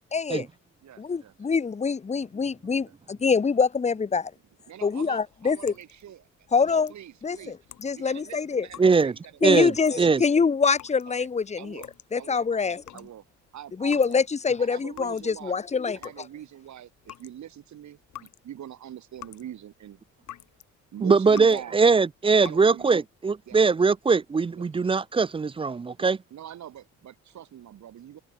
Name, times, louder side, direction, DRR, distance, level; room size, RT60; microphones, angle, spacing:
voice 1, 0.1-0.5 1.0-4.3 4.8-5.7 6.5-6.9 7.2-8.7 9.4-11.8 12.1-12.8 13.8-16.2, left 5 dB, 20° left, 0.8 m, -25 dB
voice 2, 0.8-1.3 2.8-2.9 4.7-7.6 7.9-10.0 11.2-11.3 11.6-11.9 12.2-13.2 13.5-14.2 14.6-15.6 15.9-20.0 20.9-21.8 22.4-23.0 23.5-23.9 24.5-24.7 26.0-28.2, right 11 dB, 70° right, 4.7 m, -43 dB
sound 1, 5.0-14.5 14.8-20.7 21.1-21.7 22.0-22.8 23.4-24.0, left 12 dB, 75° left, 2.9 m, -49 dB
voice 3, 8.8-9.1 9.4-9.7 10.0-10.2 21.0-26.2, right 4 dB, 20° right, 0.4 m, -21 dB
cardioid pair, 90°, 30 cm